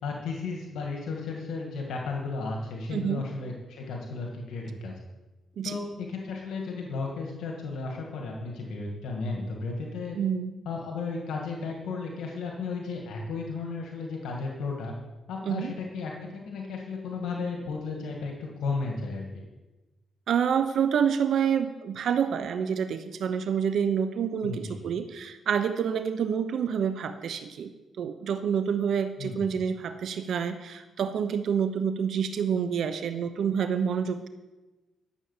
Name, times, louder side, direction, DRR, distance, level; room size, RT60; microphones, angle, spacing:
voice 1, 0.0-5.0 5.6-10.2 10.7-14.9 15.3-19.3 24.4-24.8 29.2-29.5, left 4 dB, 85° left, 0 dB, 2.1 m, -34 dB
voice 2, 2.9-3.2 5.6-5.8 10.1-10.5 15.4-15.7 20.3-27.7 28.0-34.3, right 7 dB, 70° right, 10 dB, 0.9 m, -28 dB
12.5 x 7.3 x 7.4 m, 1.1 s
cardioid pair, 95°, 0 cm